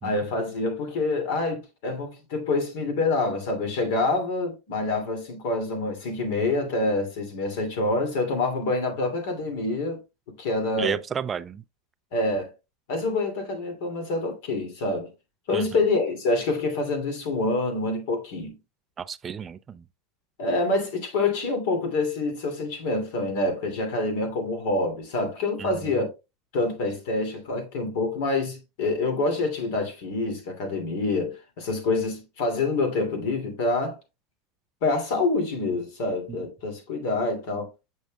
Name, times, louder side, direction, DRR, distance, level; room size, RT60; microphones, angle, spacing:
voice 1, 0.0-10.0 10.4-11.0 12.1-12.5 12.9-15.1 15.5-18.5 20.4-26.1 26.5-34.0 34.8-37.7, left 2 dB, 70° left, 2.7 m, -26 dB
voice 2, 10.8-11.6 15.5-15.6 19.0-19.8 25.6-25.7 36.3-36.4, right 7 dB, 25° right, 0.3 m, -32 dB
7.3 x 6.3 x 2.3 m
supercardioid pair, 125°, 0 cm